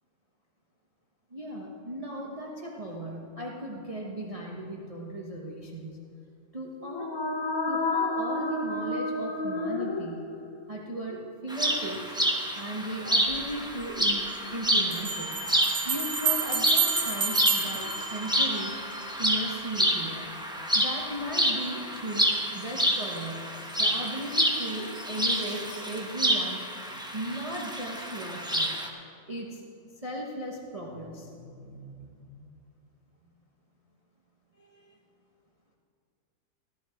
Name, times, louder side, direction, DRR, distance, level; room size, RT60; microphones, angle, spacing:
voice 1, 1.3-6.0 6.5-7.1 7.7-10.3 10.7-12.1 12.5-15.4 15.8-18.8 19.2-20.3 20.7-23.5 23.8-26.6 27.1-28.8 29.3-29.6 30.0-32.5 34.6-35.0, right 1 dB, 25° right, -3 dB, 1.1 m, -37 dB
sound 1, 6.8-10.7, left 2 dB, 35° left, 0.4 m, -30 dB
sound 2, 11.5-28.9, equal, 5° right, 1.0 m, -29 dB
Bell, 13.3-13.4 14.9-18.8, right 6 dB, 55° right, 2.1 m, -29 dB
16.5 x 11.5 x 4.5 m, 2.5 s
omnidirectional pair, 1.5 m